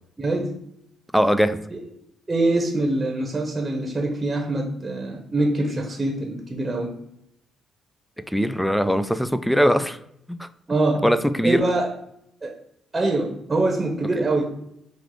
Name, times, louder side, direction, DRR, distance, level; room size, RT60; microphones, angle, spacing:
voice 1, 0.2-0.5 2.3-6.9 10.7-11.1 11.4-11.9 12.4-12.6 12.9-14.4, right 2 dB, 20° right, 0.8 m, -24 dB
voice 2, 1.1-1.6 8.3-10.0 10.3-10.5 11.0-11.7, equal, ahead, 0.3 m, -21 dB
4.6 x 2.4 x 3.7 m
cardioid pair, 90°, 0 cm